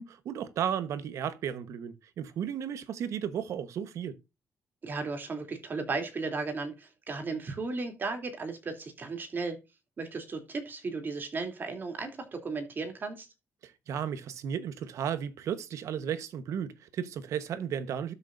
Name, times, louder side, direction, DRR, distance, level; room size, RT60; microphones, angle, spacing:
voice 1, 0.0-4.2 13.6-18.1, right 8 dB, 75° right, 1.1 m, -34 dB
voice 2, 4.8-9.6 10.0-13.3, right 3 dB, 40° right, 3.0 m, -35 dB
12.5 x 6.4 x 2.6 m
cardioid pair, 120°, 5 cm